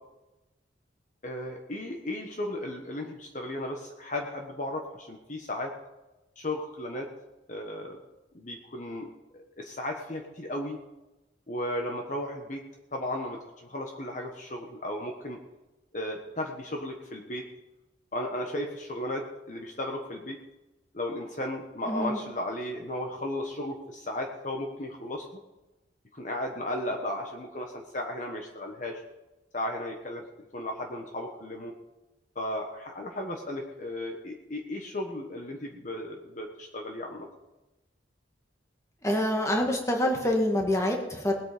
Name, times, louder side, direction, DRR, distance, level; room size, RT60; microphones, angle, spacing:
voice 1, 1.2-5.7 6.4-7.1 7.5-8.0 8.3-9.1 9.6-10.8 11.5-12.6 12.9-15.4 15.9-17.4 18.1-20.4 20.9-25.4 26.1-29.0 29.5-30.2 30.5-31.7 32.3-37.3, left 1 dB, 40° left, 2 dB, 1.4 m, -35 dB
voice 2, 21.9-22.2 39.0-41.3, left 1 dB, 15° left, 1 dB, 1.9 m, -26 dB
19.5 x 8.7 x 5.1 m, 1.0 s
head